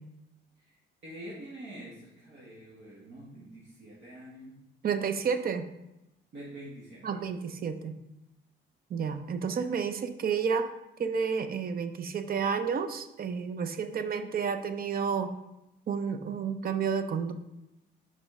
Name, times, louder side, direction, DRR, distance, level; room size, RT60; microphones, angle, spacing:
voice 1, 1.0-4.6 6.3-7.3, right 1 dB, 65° right, -4 dB, 1.3 m, -46 dB
voice 2, 4.8-5.6 7.0-7.9 8.9-10.7 11.0-15.3 15.9-17.3, right 6 dB, 50° right, 9 dB, 0.6 m, -30 dB
5.4 x 5.1 x 3.6 m, 0.91 s
cardioid pair, 90°, 20 cm